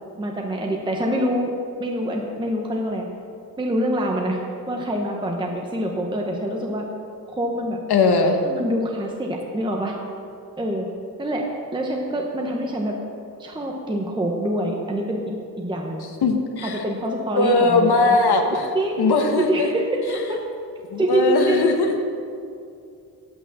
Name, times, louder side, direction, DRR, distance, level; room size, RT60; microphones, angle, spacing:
voice 1, 0.2-1.5 1.8-3.1 3.6-4.4 4.7-6.9 7.3-7.8 8.4-10.0 10.6-10.9 11.2-11.4 11.7-12.9 13.4-15.2 15.6-16.1 16.6-18.2 18.5-19.1 19.4-20.4 21.0-21.7, right 1 dB, 10° right, 0 dB, 0.8 m, -25 dB
voice 2, 7.9-8.4 16.2-16.8 17.3-18.7 19.0-19.7 20.9-21.7, left 3 dB, 85° left, 4 dB, 1.2 m, -19 dB
9.7 x 8.5 x 7.3 m, 2.5 s
wide cardioid pair, 180°, 38 cm